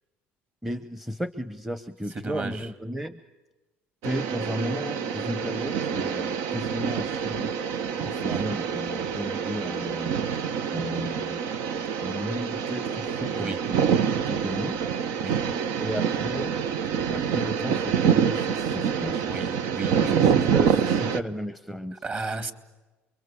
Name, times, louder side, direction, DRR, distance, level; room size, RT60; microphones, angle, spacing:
voice 1, 0.6-3.3 4.0-7.5 8.0-10.1 10.7-11.4 11.8-14.8 15.8-16.5 17.0-19.4 20.0-22.0, equal, 5° right, 12 dB, 0.9 m, -34 dB
voice 2, 2.2-2.7 8.0-8.4 13.3-13.6 15.2-15.4 19.2-20.3 22.0-22.5, right 3 dB, 35° right, 11 dB, 2.6 m, -34 dB
sound 1, 4.0-21.2, right 7 dB, 85° right, 1.3 m, -26 dB
29.5 x 23.0 x 8.6 m, 1.2 s
cardioid pair, 115°, 5 cm